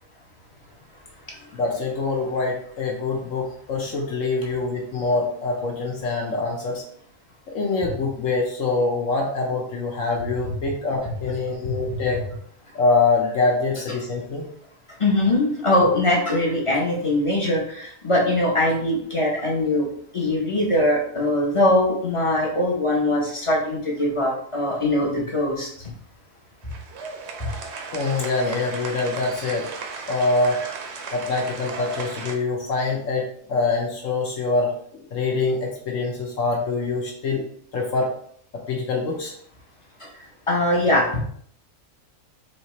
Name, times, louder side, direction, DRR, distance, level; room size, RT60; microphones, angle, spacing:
voice 1, 1.5-6.8 7.5-12.2 12.7-14.4 27.9-29.7 30.1-30.6 31.1-37.5 37.7-38.1 38.5-39.3, left 3 dB, 70° left, -1 dB, 1.1 m, -24 dB
voice 2, 15.0-19.9 20.1-25.7 40.0-40.1 40.5-41.2, left 1 dB, 30° left, -2 dB, 0.7 m, -21 dB
sound 1, 26.6-32.4, right 4 dB, 65° right, 0.8 m, -35 dB
4.2 x 2.8 x 3.0 m, 0.62 s
omnidirectional pair, 1.4 m